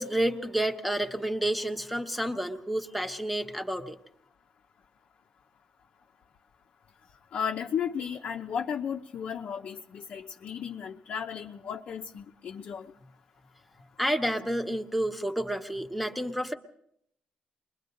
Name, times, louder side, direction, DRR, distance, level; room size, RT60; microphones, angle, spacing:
voice 1, 0.0-4.0 14.0-16.5, right 1 dB, ahead, 6 dB, 1.3 m, -30 dB
voice 2, 7.3-12.9, left 7 dB, 50° left, 0 dB, 0.9 m, -34 dB
29.5 x 22.5 x 4.0 m, 0.72 s
cardioid pair, 150°, 3 cm